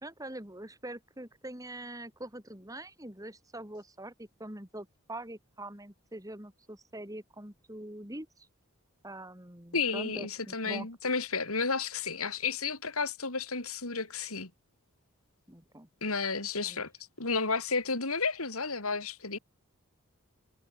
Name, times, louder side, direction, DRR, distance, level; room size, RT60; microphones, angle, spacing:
voice 1, 0.0-8.5 9.0-10.9 15.5-15.9 16.6-16.8, right 1 dB, 15° right, 3.4 m, -44 dB
voice 2, 9.7-14.5 16.0-16.9 17.2-19.4, left 4 dB, 80° left, 4.7 m, -32 dB
head